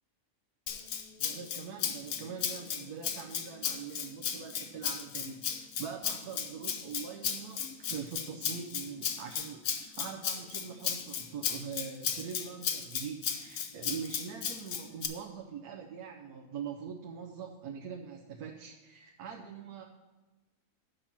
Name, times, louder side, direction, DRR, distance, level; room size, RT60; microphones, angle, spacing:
Rattle (instrument), 0.7-15.1, left 8 dB, 65° left, 1.1 m, -35 dB
voice 1, 1.2-19.8, right 6 dB, 80° right, 2 dB, 1.2 m, -43 dB
6.8 x 5.8 x 7.2 m, 1.2 s
omnidirectional pair, 1.6 m